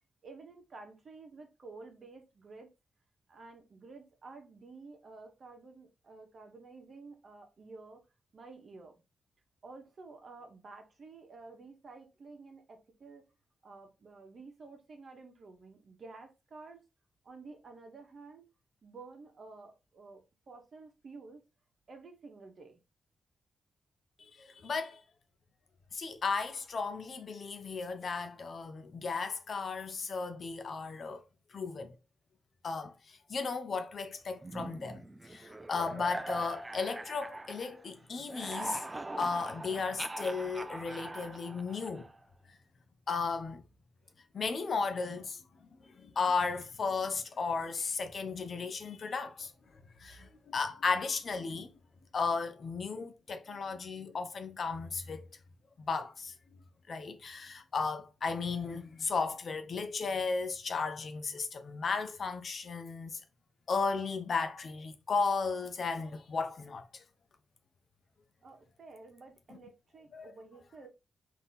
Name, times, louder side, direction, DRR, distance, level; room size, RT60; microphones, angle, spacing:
voice 1, 0.2-2.7 3.3-8.0 8.3-8.9 9.6-13.3 13.6-16.9 17.2-18.5 18.8-21.4 21.9-22.8 68.4-70.9, right 3 dB, 50° right, 1.2 m, -51 dB
voice 2, 24.4-25.0 25.9-31.2 31.5-31.9 32.6-32.9 33.3-35.0 35.3-38.8 39.2-42.1 43.1-43.6 44.3-45.4 46.0-49.5 50.0-51.7 52.1-55.3 55.8-56.6 56.9-63.2 63.7-67.0 70.1-70.3, left 4 dB, 55° left, 0.7 m, -35 dB
sound 1, 34.4-37.9 38.2-42.2, right 2 dB, 20° right, 0.4 m, -42 dB
3.7 x 2.8 x 4.0 m
cardioid pair, 85°, 0 cm